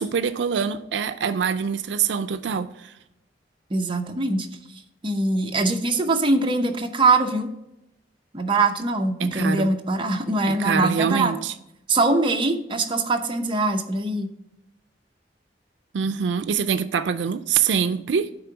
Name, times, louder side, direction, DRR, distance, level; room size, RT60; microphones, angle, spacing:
voice 1, 0.0-2.9 9.2-9.7 10.5-11.5 15.9-18.3, right 6 dB, 85° right, 0.4 m, -24 dB
voice 2, 3.7-4.5 5.0-7.5 8.3-11.3 11.9-14.3, right 2 dB, 30° right, 0.7 m, -22 dB
9.6 x 3.7 x 6.9 m
head